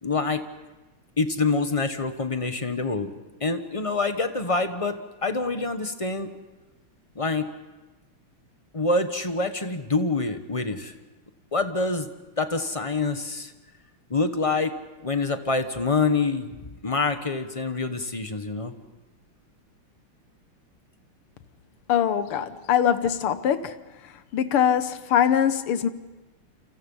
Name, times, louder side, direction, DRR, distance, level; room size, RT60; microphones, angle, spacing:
voice 1, 0.0-0.4 1.2-3.1 3.4-6.3 7.1-7.5 8.7-10.9 11.5-12.1 12.4-13.5 14.1-14.7 15.0-18.7, left 3 dB, 20° left, 0.9 m, -26 dB
voice 2, 21.9-23.7 24.3-25.9, left 9 dB, 85° left, 2.0 m, -22 dB
28.5 x 27.5 x 5.6 m
omnidirectional pair, 2.4 m